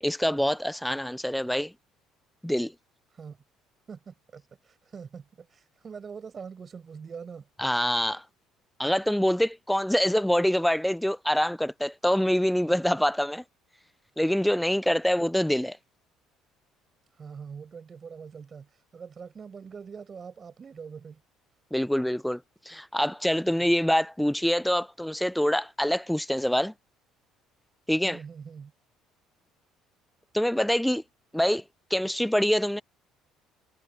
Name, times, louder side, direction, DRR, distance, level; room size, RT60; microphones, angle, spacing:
voice 1, 0.0-1.7 2.4-2.7 7.6-8.2 8.8-13.4 14.2-15.8 21.7-22.4 22.7-26.7 27.9-28.2 30.3-31.0 31.3-31.6 31.9-32.8, equal, 5° left, 0.3 m, -25 dB
voice 2, 3.9-7.5 17.2-21.2 28.0-28.7, right 6 dB, 35° right, 7.1 m, -43 dB
cardioid pair, 110°, 0 cm